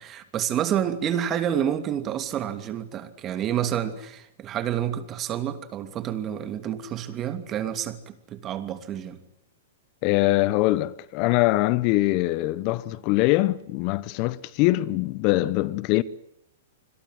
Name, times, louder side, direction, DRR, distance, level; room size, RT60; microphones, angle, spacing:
voice 1, 0.0-9.2, right 10 dB, 30° right, 2.8 m, -29 dB
voice 2, 10.0-16.0, left 18 dB, 45° left, 1.0 m, -23 dB
27.0 x 22.0 x 8.0 m
hypercardioid pair, 130°, 0 cm